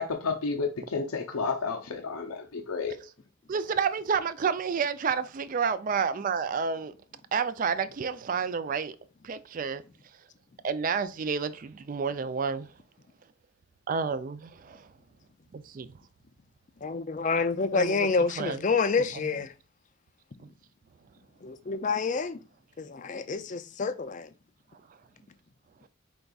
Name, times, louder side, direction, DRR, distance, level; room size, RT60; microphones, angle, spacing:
voice 1, 0.0-3.0, left 4 dB, 85° left, 0.6 m, -31 dB
voice 2, 3.5-6.9 7.3-9.0 9.2-9.8 10.6-12.7 13.9-14.9 15.5-15.9 17.7-18.1 18.4-18.6, right 6 dB, 40° right, 0.3 m, -30 dB
voice 3, 16.8-19.5 21.4-22.4 22.8-24.3, left 4 dB, 35° left, 0.4 m, -28 dB
5.2 x 3.4 x 2.3 m
head